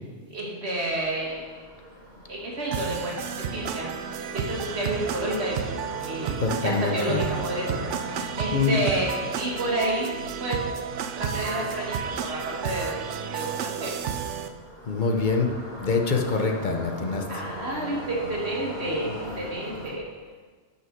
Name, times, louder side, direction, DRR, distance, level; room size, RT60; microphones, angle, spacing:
voice 1, 0.3-1.5 2.3-3.9 4.2-5.6 6.0-6.4 6.6-10.6 11.2-13.0 13.3-13.9 17.3-20.0, right 1 dB, 60° right, -3 dB, 2.1 m, -30 dB
sound 1, 0.8-19.9, equal, 20° left, 3.4 m, -42 dB
sound 2, 2.7-14.5, right 7 dB, 80° right, 0.9 m, -32 dB
voice 2, 6.4-7.2 8.5-8.8 14.9-15.5 15.8-17.2, left 4 dB, 45° left, 3 dB, 1.0 m, -24 dB
12.0 x 5.9 x 4.8 m, 1.5 s
omnidirectional pair, 1.2 m